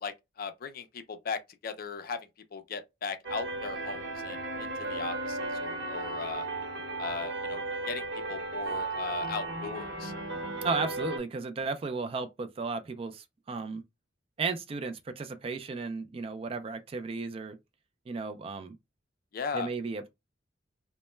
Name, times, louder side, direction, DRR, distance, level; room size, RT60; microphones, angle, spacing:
voice 1, 0.0-2.2 2.5-6.5 7.0-10.1 19.3-19.7, left 5 dB, 55° left, 0.4 m, -38 dB
sound 1, 3.2-11.2, right 2 dB, 80° right, 0.9 m, -35 dB
voice 2, 10.6-13.8 14.4-17.6 18.1-18.8 19.5-20.1, right 4 dB, 30° right, 0.3 m, -34 dB
2.1 x 2.1 x 3.0 m
head